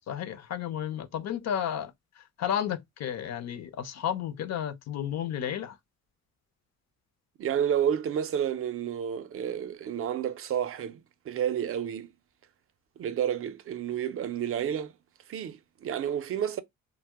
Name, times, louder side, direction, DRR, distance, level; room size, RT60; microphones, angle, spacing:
voice 1, 0.1-5.8, left 9 dB, 60° left, 0.5 m, -32 dB
voice 2, 7.4-11.0 11.3-12.1 13.0-14.9 15.3-16.6, right 9 dB, 50° right, 0.4 m, -30 dB
2.8 x 2.0 x 3.3 m
cardioid pair, 90°, 30 cm